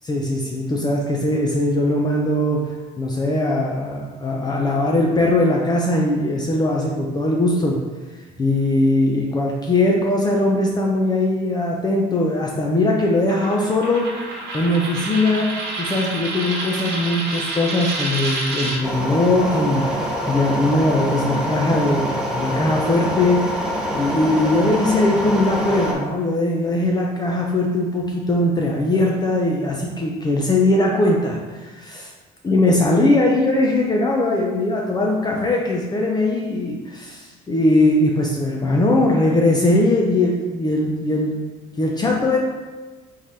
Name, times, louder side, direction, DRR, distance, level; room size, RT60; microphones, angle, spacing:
voice 1, 0.1-7.8 8.1-14.1 14.5-15.5 15.8-20.0 20.3-23.6 23.9-32.1 32.4-41.3 41.8-42.4, left 1 dB, 25° left, -1 dB, 0.6 m, -20 dB
Coin (dropping), 13.3-18.8, right 2 dB, 75° right, 1.2 m, -28 dB
sound 1, 18.8-25.9, equal, 5° right, 0.8 m, -25 dB
3.8 x 3.2 x 4.1 m, 1.3 s
cardioid pair, 110°, 17 cm